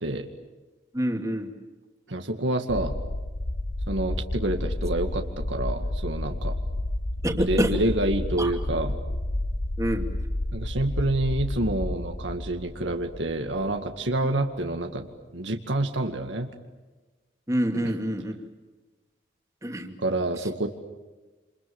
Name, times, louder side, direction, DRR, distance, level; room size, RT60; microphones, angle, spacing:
voice 1, 0.9-1.5 7.2-7.7 8.4-8.5 9.8-10.1 17.5-18.3 19.6-19.9 20.4-20.5, equal, 15° right, 4 dB, 2.5 m, -26 dB
voice 2, 2.1-2.9 3.9-6.6 7.4-9.0 10.5-16.5 17.7-17.9 20.0-20.7, right 1 dB, 85° right, 4 dB, 2.1 m, -28 dB
sound 1, 2.7-14.2, left 1 dB, 75° left, 1.3 m, -31 dB
28.0 x 27.5 x 7.2 m, 1.3 s
head